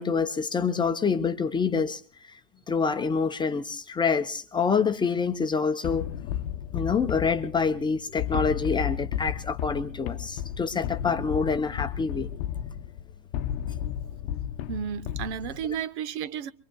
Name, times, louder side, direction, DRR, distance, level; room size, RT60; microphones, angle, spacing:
voice 1, 0.0-2.0 2.3-2.4 2.7-6.0 6.7-12.3, left 5 dB, 10° left, 0.7 m, -26 dB
sound 1, 5.8-15.8, left 11 dB, 55° left, 0.8 m, -33 dB
voice 2, 14.7-16.5, right 8 dB, 60° right, 0.9 m, -32 dB
25.5 x 23.0 x 2.3 m
hypercardioid pair, 125°, 39 cm